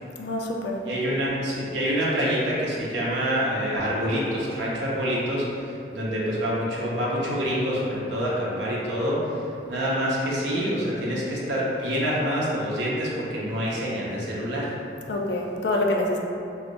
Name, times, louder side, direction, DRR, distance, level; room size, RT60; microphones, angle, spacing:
voice 1, 0.2-0.8 15.1-16.2, left 1 dB, 70° left, 1 dB, 0.3 m, -26 dB
voice 2, 0.8-9.4 9.7-14.7, equal, 75° right, -6 dB, 0.7 m, -26 dB
3.1 x 2.5 x 3.1 m, 2.6 s
head